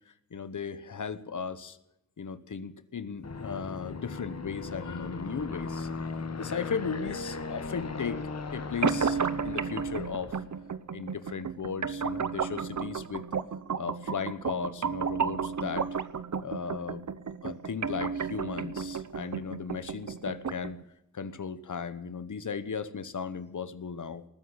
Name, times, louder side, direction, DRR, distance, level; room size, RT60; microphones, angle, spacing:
voice 1, 0.3-1.8 2.2-5.9 6.4-8.2 8.5-10.4 10.9-13.3 13.8-15.9 16.4-17.0 17.4-20.8 21.1-24.3, left 6 dB, 85° left, 13 dB, 1.1 m, -36 dB
Aircraft, 3.2-10.6, left 4 dB, 60° left, 1.3 m, -38 dB
sound 1, 8.8-20.8, right 6 dB, 70° right, 0.9 m, -33 dB
19.5 x 9.7 x 7.4 m, 0.85 s
wide cardioid pair, 65°, 30 cm